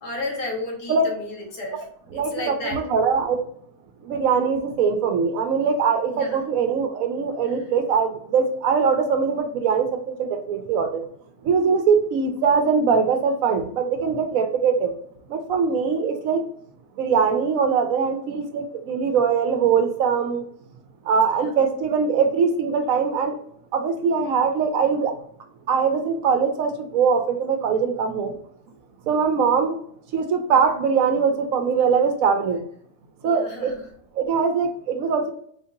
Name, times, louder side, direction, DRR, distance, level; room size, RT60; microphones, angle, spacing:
voice 1, 0.0-1.8 2.1-2.9 6.1-6.4 21.3-21.5 33.2-33.9, left 2 dB, 90° left, -1 dB, 1.7 m, -33 dB
voice 2, 2.1-3.4 4.0-11.0 11.4-14.9 15.3-16.4 17.0-20.5 21.1-23.4 23.7-25.1 25.7-28.3 29.1-29.8 30.1-32.6 33.2-33.7 34.2-35.3, right 6 dB, 70° right, 6 dB, 0.9 m, -22 dB
4.3 x 2.5 x 2.6 m, 0.63 s
omnidirectional pair, 1.6 m